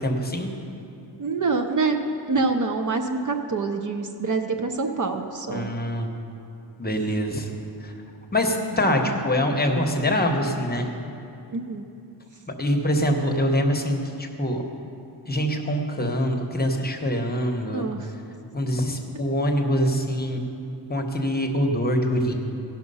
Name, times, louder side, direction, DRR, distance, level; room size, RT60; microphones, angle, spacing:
voice 1, 0.0-0.5 5.5-6.1 6.8-7.5 7.8-7.9 8.3-10.9 12.6-14.6 15.3-17.9 18.5-20.4 20.9-22.3, equal, 20° left, 2 dB, 0.9 m, -24 dB
voice 2, 1.2-2.0 2.3-5.7 11.5-11.8 17.7-18.1, right 4 dB, 45° right, 5 dB, 0.6 m, -26 dB
16.5 x 5.9 x 5.5 m, 2.6 s
wide cardioid pair, 130°, 43 cm